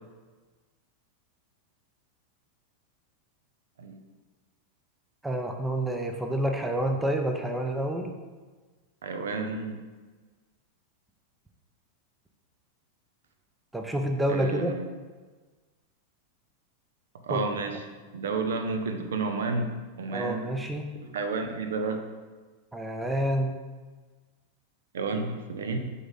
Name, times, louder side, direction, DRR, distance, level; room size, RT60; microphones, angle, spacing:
voice 1, 5.2-8.1 13.7-14.7 17.3-17.4 20.1-21.0 22.7-23.6, right 1 dB, 5° right, 4 dB, 0.6 m, -28 dB
voice 2, 9.0-9.8 14.3-14.9 17.2-20.6 21.1-22.0 24.9-25.8, right 3 dB, 60° right, 6 dB, 0.6 m, -31 dB
7.8 x 3.6 x 4.1 m, 1.3 s
figure-of-eight pair, 90°, 0 cm